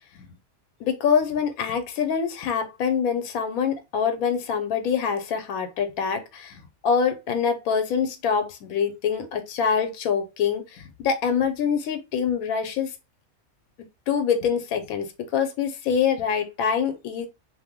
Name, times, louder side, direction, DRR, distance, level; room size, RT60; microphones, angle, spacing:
voice 1, 0.8-12.9 14.1-17.3, left 7 dB, 80° left, 1.1 m, -25 dB
2.8 x 2.0 x 3.5 m
omnidirectional pair, 1.5 m